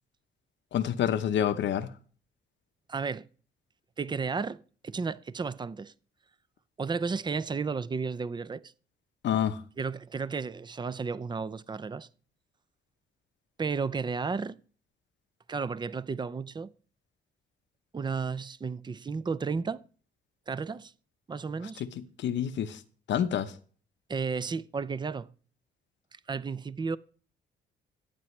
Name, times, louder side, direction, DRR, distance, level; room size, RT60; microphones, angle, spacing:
voice 1, 0.7-1.9 9.2-9.6 21.8-21.9 22.2-22.8 23.1-23.5, left 9 dB, 65° left, 0.9 m, -27 dB
voice 2, 2.9-3.3 4.0-5.9 6.8-8.7 9.8-12.1 13.6-14.6 15.5-16.7 17.9-19.8 20.5-20.9 21.3-21.8 24.1-25.3 26.3-27.0, right 5 dB, 20° right, 0.5 m, -33 dB
15.0 x 8.9 x 3.2 m
cardioid pair, 90°, 20 cm